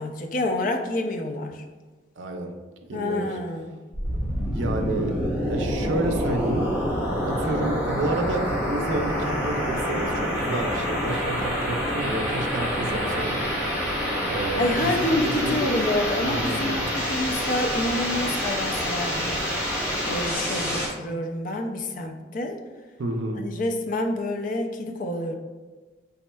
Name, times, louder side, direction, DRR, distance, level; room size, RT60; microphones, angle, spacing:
voice 1, 0.0-1.6 2.9-3.8 14.6-19.4 20.1-22.6 23.3-25.3, left 1 dB, 45° left, 4 dB, 0.4 m, -28 dB
voice 2, 2.2-2.5 2.9-3.4 4.5-5.2 5.5-6.7 7.3-13.4 14.3-15.6 16.3-16.7 23.0-23.4, right 2 dB, 85° right, 4 dB, 0.5 m, -30 dB
sound 1, 3.9-20.9, equal, 15° left, 1.2 m, -27 dB
4.2 x 3.5 x 2.2 m, 1.3 s
head